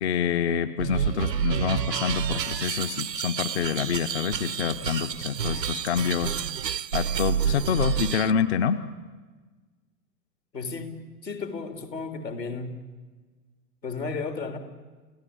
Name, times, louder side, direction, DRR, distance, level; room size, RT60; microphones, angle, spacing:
voice 1, 0.0-6.3 6.9-8.8, left 8 dB, 40° left, 10 dB, 0.9 m, -27 dB
sound 1, 0.8-8.3, right 8 dB, 75° right, 0.8 m, -29 dB
voice 2, 10.5-12.8 13.8-14.6, left 4 dB, 75° left, 6 dB, 3.8 m, -34 dB
29.0 x 16.5 x 8.8 m, 1.4 s
figure-of-eight pair, 110°, 50 cm